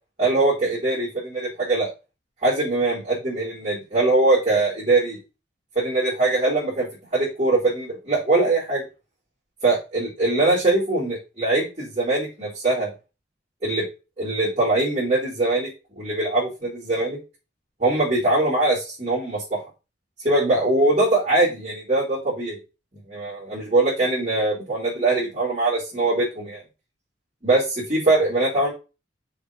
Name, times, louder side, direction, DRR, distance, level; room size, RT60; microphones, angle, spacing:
voice 1, 0.2-1.9 2.4-5.2 5.7-8.8 9.6-12.9 13.6-13.8 14.2-17.2 17.8-19.6 20.2-22.6 22.9-26.6 27.4-28.7, right 2 dB, 35° right, -9 dB, 4.2 m, -22 dB
7.2 x 4.8 x 5.2 m, 0.30 s
head